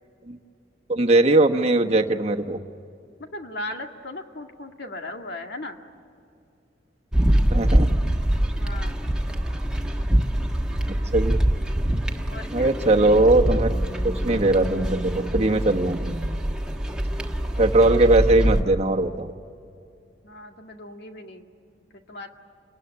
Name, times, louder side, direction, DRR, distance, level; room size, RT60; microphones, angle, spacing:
voice 1, 0.9-2.6 7.5-7.9 10.9-11.4 12.5-13.7 14.0-16.2 17.6-19.3, right 2 dB, 35° right, 3 dB, 1.2 m, -20 dB
voice 2, 3.2-5.8 8.6-9.0 12.3-12.8 20.2-21.5 21.9-22.3, left 2 dB, 60° left, 4 dB, 2.0 m, -37 dB
sound 1, 7.1-18.6, right 1 dB, 5° right, 1.4 m, -24 dB
29.0 x 20.0 x 10.0 m, 2.4 s
head